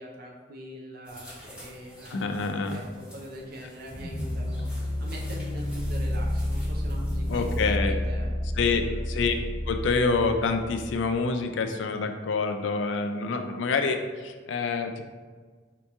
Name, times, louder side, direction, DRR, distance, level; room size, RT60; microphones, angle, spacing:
voice 1, 0.0-2.3 2.6-2.8 3.1-4.7 5.0-7.8 8.1-9.0, equal, 55° right, -2 dB, 0.6 m, -43 dB
sound 1, 1.0-7.7, equal, 5° right, 1.2 m, -50 dB
voice 2, 2.1-2.8 7.3-8.0 8.6-9.3 9.7-15.0, left 4 dB, 75° left, 6 dB, 0.4 m, -27 dB
sound 2, 3.9-11.1, left 1 dB, 15° left, 1.1 m, -30 dB
4.4 x 2.9 x 3.5 m, 1.5 s
head